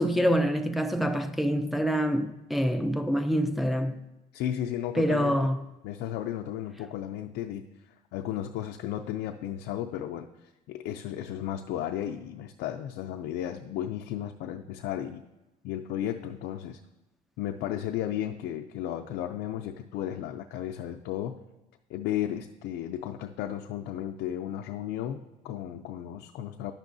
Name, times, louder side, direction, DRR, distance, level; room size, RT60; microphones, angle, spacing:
voice 1, 0.0-4.0 5.0-5.6, equal, ahead, 0.4 m, -26 dB
voice 2, 4.3-5.5 5.8-7.7 8.1-10.3 10.7-15.2 15.6-16.8 17.4-21.4 21.9-26.7, left 11 dB, 85° left, 0.4 m, -34 dB
10.0 x 6.1 x 2.6 m
cardioid pair, 110°, 17 cm